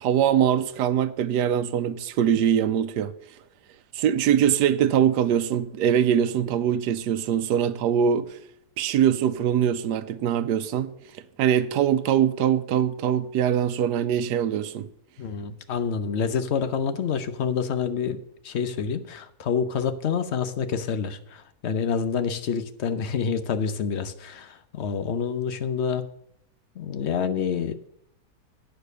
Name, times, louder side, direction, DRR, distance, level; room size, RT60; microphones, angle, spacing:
voice 1, 0.0-3.1 3.9-8.4 8.8-10.9 11.4-14.9, right 9 dB, 90° right, 1.3 m, -22 dB
voice 2, 15.2-26.0 26.8-27.7, left 6 dB, 50° left, 0.9 m, -27 dB
9.2 x 6.7 x 6.6 m
omnidirectional pair, 1.7 m